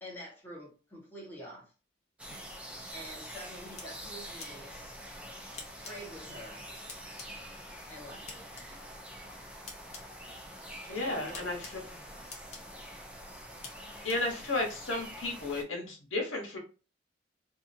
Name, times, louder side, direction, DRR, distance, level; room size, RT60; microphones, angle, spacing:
voice 1, 0.0-1.7 2.9-5.0 5.8-6.7 7.9-8.5 10.8-11.5, equal, 10° left, -3 dB, 1.0 m, -47 dB
dwa entrance, 2.2-15.6, equal, 5° right, 0.4 m, -46 dB
sound 1, 2.3-2.4 3.8-3.9 4.4-4.5 5.5-5.9 6.9-7.3 8.2-8.6 9.7-10.0 11.3-11.7 12.3-12.6 13.6-13.7 14.1-14.2, left 4 dB, 35° left, 0.7 m, -44 dB
voice 2, 10.9-12.0 14.0-16.6, left 2 dB, 85° left, 2 dB, 1.0 m, -33 dB
2.7 x 2.4 x 2.5 m, 0.35 s
head